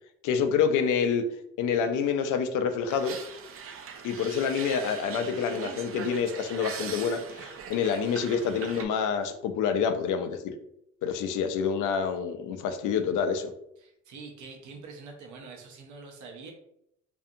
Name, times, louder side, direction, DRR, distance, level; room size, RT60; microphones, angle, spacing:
voice 1, 0.2-1.2 1.6-3.2 4.0-10.5 11.0-13.5, left 6 dB, 85° left, 8 dB, 0.5 m, -27 dB
sound 1, 2.9-8.9, right 6 dB, 45° right, 0.4 m, -41 dB
voice 2, 13.8-16.5, right 4 dB, 75° right, 1 dB, 0.8 m, -45 dB
2.6 x 2.4 x 2.6 m, 0.78 s
cardioid pair, 90°, 30 cm